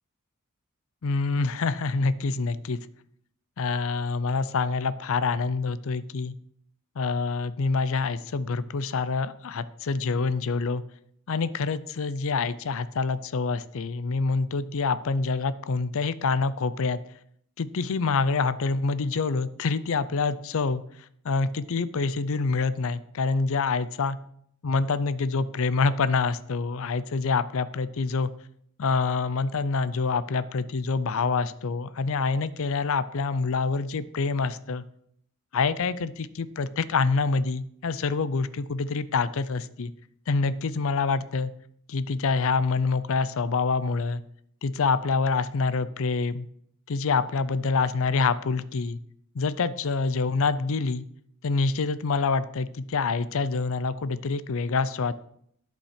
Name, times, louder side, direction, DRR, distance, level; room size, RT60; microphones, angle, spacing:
voice 1, 1.0-2.8 3.6-6.3 7.0-10.8 11.3-17.0 17.6-20.8 21.2-24.2 24.6-28.3 28.8-34.8 35.5-39.9 40.3-41.5 41.9-44.2 44.6-46.5 46.9-49.0 49.4-51.1 51.4-55.1, left 4 dB, 65° left, 15 dB, 0.5 m, -26 dB
11.5 x 5.4 x 5.0 m, 0.68 s
head